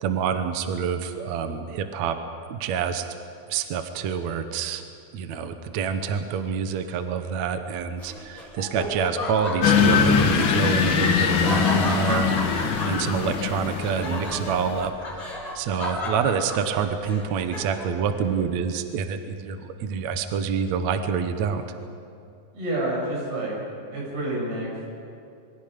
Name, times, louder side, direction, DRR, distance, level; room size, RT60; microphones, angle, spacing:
voice 1, 0.0-2.2 2.5-3.1 3.5-4.8 5.1-14.9 15.6-21.6, right 6 dB, 65° right, 7 dB, 2.0 m, -27 dB
Laughter, 8.0-18.0, left 1 dB, 20° left, 5.0 m, -33 dB
sound 1, 9.6-14.8, left 6 dB, 70° left, 1.2 m, -22 dB
voice 2, 22.5-23.5 23.9-24.7 24.9-25.0, right 1 dB, 85° right, -4 dB, 9.1 m, -28 dB
27.0 x 23.0 x 5.2 m, 2.5 s
omnidirectional pair, 4.2 m